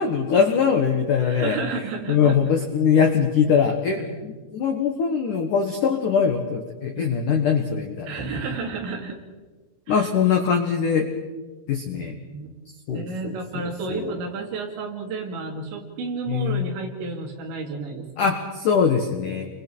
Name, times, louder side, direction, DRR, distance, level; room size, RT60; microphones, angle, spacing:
voice 1, 0.0-1.6 2.1-4.0 4.5-8.1 9.9-11.1 11.7-12.1 12.9-13.3 13.9-14.0 16.3-16.7 18.2-19.5, left 6 dB, 75° left, 3 dB, 1.9 m, -22 dB
voice 2, 1.2-2.5 4.0-4.2 7.0-7.2 8.1-9.2 9.9-10.1 11.9-12.6 12.9-18.3, right 4 dB, 65° right, 2 dB, 4.6 m, -32 dB
30.0 x 24.5 x 4.6 m, 1.3 s
omnidirectional pair, 5.9 m